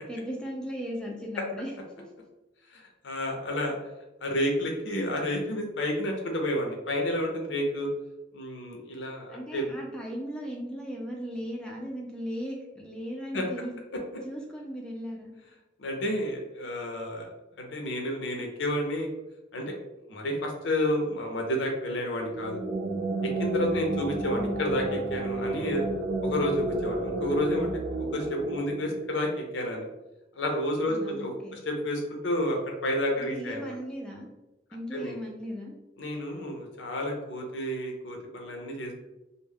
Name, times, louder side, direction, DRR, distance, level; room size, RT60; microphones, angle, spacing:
voice 1, 0.0-2.1 9.3-13.8 14.2-15.3 30.9-31.6 33.2-34.3 34.7-35.7, equal, 5° left, -1 dB, 0.3 m, -37 dB
voice 2, 2.7-3.7 4.2-7.9 8.3-9.7 13.3-13.4 15.8-17.3 17.6-19.1 19.5-19.7 20.1-22.6 23.2-25.8 26.2-27.7 28.0-29.8 30.4-31.3 31.7-33.7 34.9-35.1 36.0-38.9, left 1 dB, 80° left, 2 dB, 0.6 m, -30 dB
sound 1, 22.2-29.7, right 2 dB, 85° right, 0.4 m, -32 dB
2.2 x 2.0 x 3.3 m, 0.98 s
head